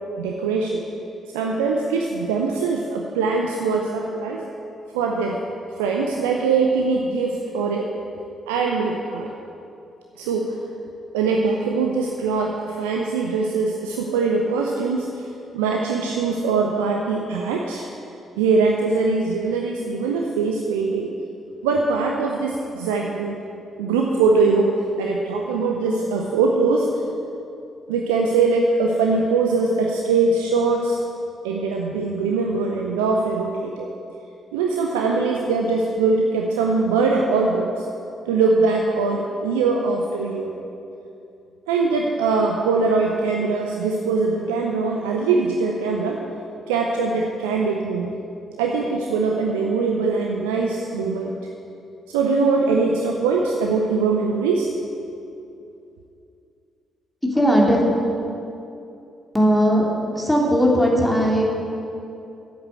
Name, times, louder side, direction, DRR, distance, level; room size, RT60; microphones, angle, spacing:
voice 1, 0.2-0.8 1.3-4.4 4.9-5.4 5.8-7.9 8.5-9.3 10.2-10.5 11.1-15.1 15.5-17.9 18.4-21.1 21.6-23.4 23.8-26.9 27.9-31.0 31.4-33.9 34.5-37.7 38.3-40.5 41.7-46.2 46.7-48.2 48.6-51.4 52.1-54.7, right 4 dB, 75° right, 0 dB, 0.6 m, -22 dB
voice 2, 57.2-57.8 59.3-59.9 60.1-61.5, equal, 10° left, -2 dB, 2.9 m, -18 dB
9.2 x 8.1 x 7.8 m, 2.7 s
figure-of-eight pair, 40°, 0 cm